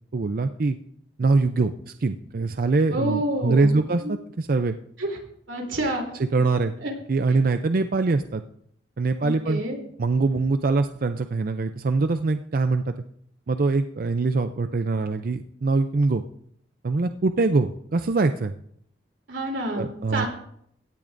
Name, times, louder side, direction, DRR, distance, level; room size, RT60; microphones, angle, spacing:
voice 1, 0.1-0.8 1.2-4.8 6.3-6.7 7.1-8.4 9.0-9.6 10.0-12.9 13.5-16.2 16.8-18.5 19.8-20.3, right 3 dB, 50° right, 9 dB, 0.4 m, -23 dB
voice 2, 2.9-3.7 4.0-4.1 5.0-5.2 5.5-6.1 6.8-6.9 7.3-7.4 9.2-9.8 19.3-20.3, right 1 dB, 90° right, 1 dB, 3.2 m, -28 dB
17.0 x 12.0 x 2.6 m, 0.68 s
head